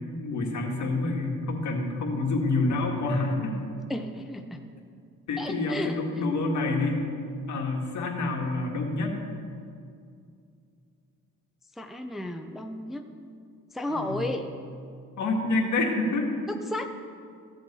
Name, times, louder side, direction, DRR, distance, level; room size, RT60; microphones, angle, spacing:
voice 1, 0.1-3.5 5.3-7.0 7.5-9.2 13.9-14.2 15.2-16.3, left 2 dB, 65° left, 1 dB, 1.9 m, -27 dB
voice 2, 3.9-4.6 5.4-6.0 11.8-13.0 13.7-14.5 16.5-16.9, left 1 dB, ahead, 4 dB, 0.6 m, -33 dB
15.0 x 7.6 x 4.2 m, 2.4 s
cardioid pair, 90°, 32 cm